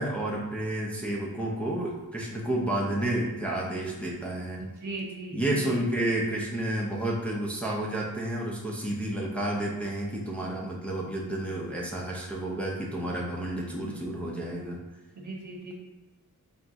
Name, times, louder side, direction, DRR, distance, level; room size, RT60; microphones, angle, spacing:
voice 1, 0.0-4.6 5.3-14.8, right 1 dB, 5° left, -4 dB, 0.5 m, -30 dB
voice 2, 4.6-5.7 15.2-15.7, right 2 dB, 60° right, -1 dB, 0.8 m, -38 dB
3.5 x 2.5 x 4.0 m, 1.2 s
wide cardioid pair, 140°, 35 cm